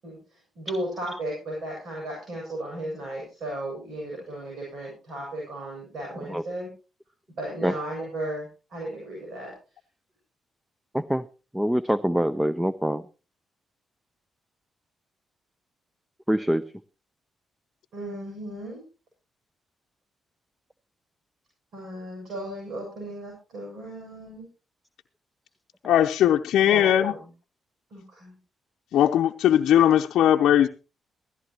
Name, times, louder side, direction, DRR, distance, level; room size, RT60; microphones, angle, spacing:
voice 1, 0.0-6.7 7.4-9.5 17.9-18.8 21.7-24.5 26.7-26.8 27.1-27.2 27.9-28.4, right 1 dB, 70° right, 7.4 m, -35 dB
voice 2, 11.5-13.1 16.3-16.6, equal, 10° right, 0.7 m, -24 dB
voice 3, 25.8-27.1 28.9-30.7, left 11 dB, 80° left, 0.6 m, -19 dB
16.5 x 14.5 x 3.0 m
supercardioid pair, 55°, 0 cm